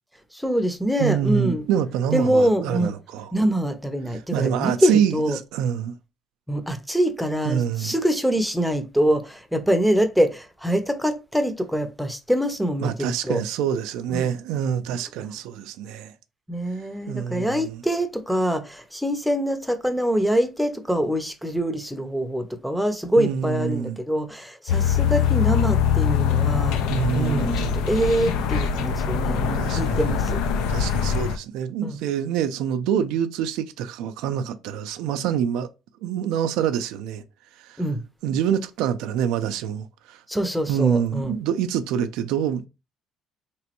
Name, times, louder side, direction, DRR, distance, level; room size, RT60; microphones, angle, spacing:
voice 1, 0.3-1.6 2.1-2.9 3.3-5.4 6.5-13.4 14.1-14.3 16.5-26.8 27.1-30.4 31.8-32.0 37.8-38.0 40.3-41.3, equal, ahead, 0.6 m, -24 dB
voice 2, 1.0-3.3 4.1-5.9 7.4-7.9 12.8-16.1 17.1-17.8 23.2-24.0 26.9-27.8 29.6-30.2 30.7-35.7 36.0-37.2 37.6-37.8 38.2-40.2 40.7-42.7, right 9 dB, 90° right, 0.4 m, -26 dB
sound 1, 24.7-31.4, left 7 dB, 90° left, 0.4 m, -23 dB
3.3 x 3.0 x 2.9 m
cardioid pair, 105°, 0 cm